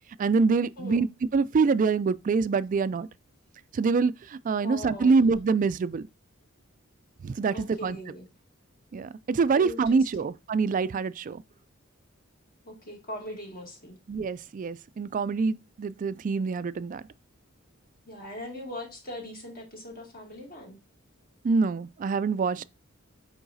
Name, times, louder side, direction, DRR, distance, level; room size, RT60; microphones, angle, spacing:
voice 1, 0.2-3.1 3.7-6.1 7.2-8.0 8.9-11.4 14.1-17.0 21.4-22.6, right 4 dB, 40° right, 0.3 m, -25 dB
voice 2, 0.8-1.1 4.6-5.2 7.5-8.3 9.5-10.2 12.6-14.0 18.0-20.8, left 1 dB, 45° left, 2.2 m, -40 dB
9.4 x 3.8 x 2.6 m
head